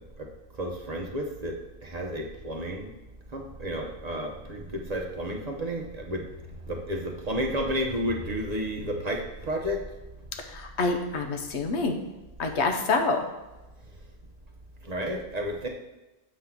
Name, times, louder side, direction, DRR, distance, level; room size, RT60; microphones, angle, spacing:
voice 1, 0.6-1.6 1.8-2.9 3.3-6.3 6.7-9.8 14.8-15.7, equal, 40° right, 1 dB, 0.8 m, -31 dB
voice 2, 10.5-12.0 12.4-13.2, left 3 dB, 75° left, 4 dB, 1.1 m, -26 dB
7.3 x 3.7 x 5.8 m, 1.0 s
omnidirectional pair, 1.1 m